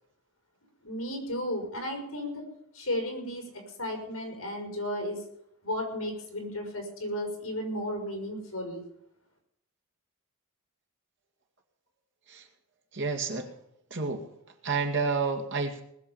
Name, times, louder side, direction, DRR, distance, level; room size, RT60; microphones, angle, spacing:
voice 1, 0.8-2.4 2.7-3.5 3.8-5.2 5.6-8.8, left 1 dB, 65° left, 3 dB, 5.6 m, -34 dB
voice 2, 12.9-13.5 13.9-14.3 14.6-15.8, right 4 dB, 55° right, 4 dB, 2.1 m, -30 dB
20.0 x 7.2 x 7.0 m, 0.75 s
head